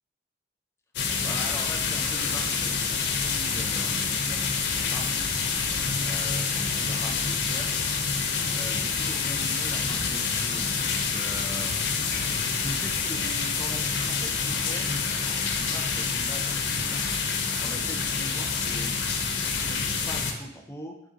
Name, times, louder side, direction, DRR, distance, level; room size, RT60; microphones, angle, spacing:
sound 1, 1.0-20.3, left 5 dB, 75° left, 0.5 m, -27 dB
voice 1, 1.2-5.3 6.0-7.8 8.5-11.8 12.5-17.1 17.6-21.0, left 1 dB, 15° left, 2 dB, 0.5 m, -41 dB
3.9 x 3.2 x 3.7 m, 0.82 s
head